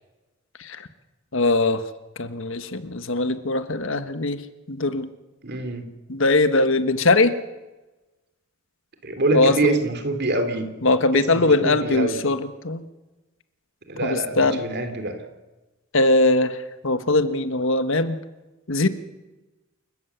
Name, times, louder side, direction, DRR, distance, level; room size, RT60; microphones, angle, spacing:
voice 1, 1.3-1.8 2.2-4.4 4.7-5.1 6.1-7.3 9.3-9.7 10.8-12.8 14.0-14.6 15.9-16.6 16.8-18.2 18.7-18.9, left 2 dB, 65° left, 11 dB, 1.4 m, -21 dB
voice 2, 5.4-5.8 9.0-10.7 11.1-12.2 13.9-15.2, right 2 dB, 55° right, 7 dB, 3.0 m, -25 dB
28.5 x 14.0 x 8.2 m, 1.1 s
head